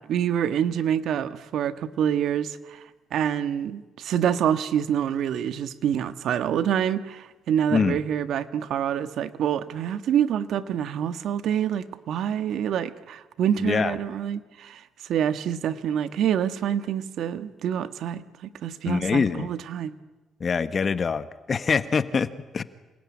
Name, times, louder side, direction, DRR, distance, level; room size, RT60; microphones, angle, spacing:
voice 1, 0.1-2.8 3.1-14.8 15.1-19.9, right 9 dB, 75° right, 11 dB, 1.5 m, -26 dB
voice 2, 13.6-14.0 18.8-19.5 20.4-22.6, left 5 dB, 40° left, 13 dB, 1.2 m, -24 dB
27.5 x 20.5 x 9.8 m, 1.2 s
cardioid pair, 90°, 0 cm